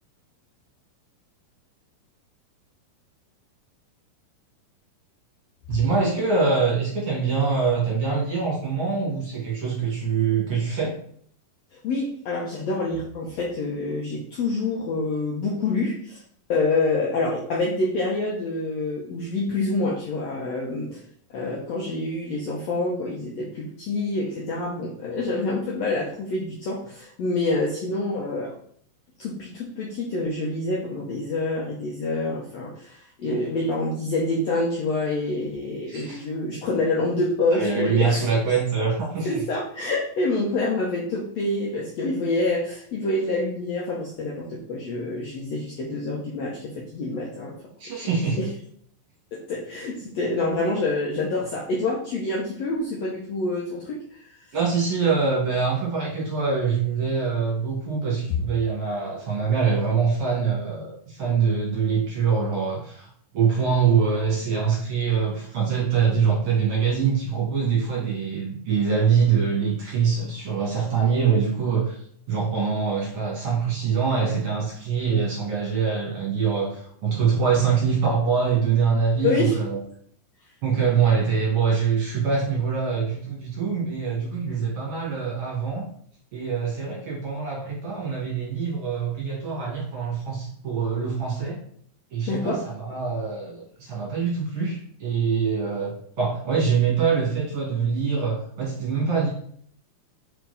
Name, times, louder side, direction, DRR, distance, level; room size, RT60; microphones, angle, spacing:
voice 1, 5.7-10.9 33.3-33.4 35.9-36.2 37.5-39.4 47.8-48.4 54.5-63.1 63.3-72.0 72.3-79.8 80.6-85.8 86.3-91.6 92.1-99.3, right 5 dB, 50° right, -4 dB, 2.4 m, -24 dB
voice 2, 11.7-16.2 16.5-21.0 21.3-28.5 29.2-38.3 39.2-47.6 48.0-48.1 48.4-48.5 49.3-54.3 79.2-79.6 92.3-92.6, left 2 dB, 70° left, -3 dB, 1.6 m, -27 dB
5.3 x 4.5 x 4.0 m, 0.62 s
omnidirectional pair, 4.1 m